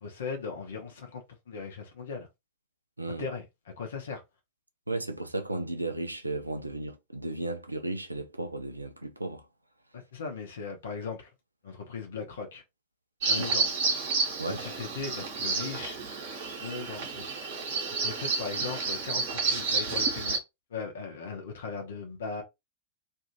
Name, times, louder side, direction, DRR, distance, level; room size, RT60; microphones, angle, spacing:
voice 1, 0.0-2.3 3.1-3.5 3.8-4.2 9.9-11.3 11.6-12.6 13.3-13.8 14.4-16.0 16.6-17.2 18.0-20.4 20.7-22.4, left 5 dB, 65° left, 0.8 m, -38 dB
voice 2, 4.9-9.4 13.3-13.5 14.4-14.6, right 2 dB, 85° right, 0.5 m, -34 dB
Bird vocalization bird call bird song, 13.2-20.4, right 4 dB, 55° right, 1.0 m, -30 dB
2.6 x 2.5 x 2.9 m
figure-of-eight pair, 90°, 0 cm